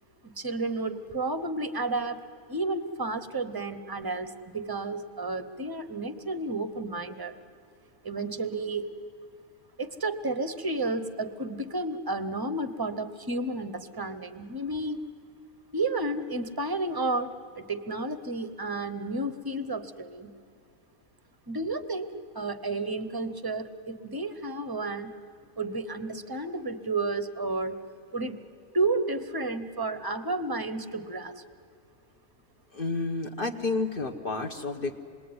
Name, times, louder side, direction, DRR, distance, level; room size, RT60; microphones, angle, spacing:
voice 1, 0.2-7.4 8.0-8.9 9.8-15.0 15.7-20.3 21.5-25.2 25.6-27.8 28.1-28.4 28.7-31.4, right 2 dB, 20° right, 11 dB, 0.8 m, -32 dB
voice 2, 32.7-35.0, left 3 dB, 40° left, 4 dB, 1.2 m, -30 dB
27.0 x 21.0 x 9.6 m, 2.5 s
omnidirectional pair, 1.5 m